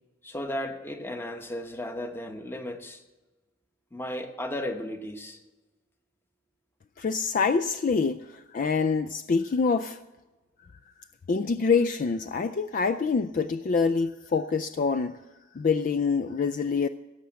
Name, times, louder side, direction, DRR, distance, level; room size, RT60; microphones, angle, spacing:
voice 1, 0.2-3.0 3.9-5.4, left 1 dB, 10° left, 6 dB, 1.0 m, -35 dB
voice 2, 7.0-10.0 11.3-15.2 15.5-16.9, left 5 dB, 40° left, 12 dB, 0.3 m, -26 dB
17.0 x 6.9 x 7.4 m, 1.1 s
head